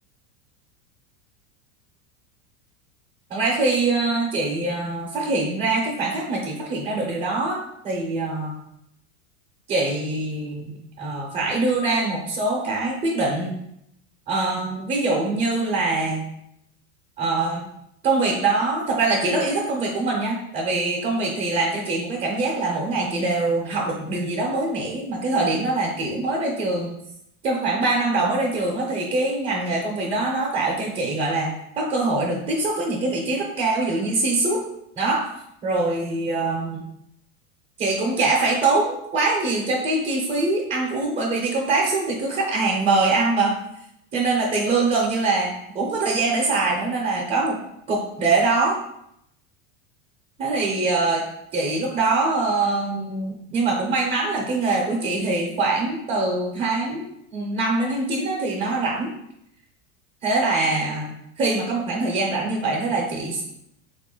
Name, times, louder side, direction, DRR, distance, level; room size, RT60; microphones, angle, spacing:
voice 1, 3.3-7.6 7.8-8.5 9.7-13.5 14.3-16.2 17.2-17.6 18.0-26.9 27.4-31.5 31.8-34.6 35.0-35.2 35.6-36.8 37.8-43.5 44.1-47.6 47.9-48.8 50.4-51.2 51.5-57.0 57.3-59.1 60.2-63.4, right 3 dB, 20° right, -3 dB, 0.6 m, -23 dB
4.0 x 2.4 x 3.6 m, 0.79 s
supercardioid pair, 155°, 40 cm